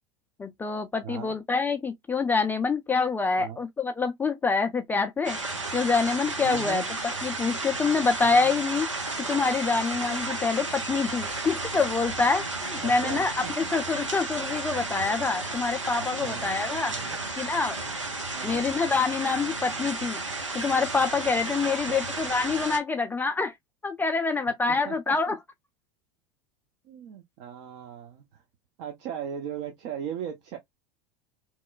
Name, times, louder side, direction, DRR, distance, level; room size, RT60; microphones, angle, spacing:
voice 1, 0.4-5.4 5.7-6.8 7.2-8.9 9.3-12.4 12.7-17.8 18.4-20.2 20.5-23.5 23.8-25.4, left 4 dB, 10° left, 0.3 m, -26 dB
voice 2, 1.0-1.3 3.4-3.6 6.4-6.9 8.2-8.5 12.7-13.5 16.2-16.5 16.9-17.2 18.3-18.6 21.7-22.1 24.3-24.4 24.7-25.4 26.8-28.4 28.8-30.6, right 9 dB, 50° right, 0.7 m, -38 dB
sound 1, 5.2-22.8, right 3 dB, 90° right, 0.7 m, -33 dB
2.9 x 2.1 x 2.3 m
figure-of-eight pair, 80°, 15 cm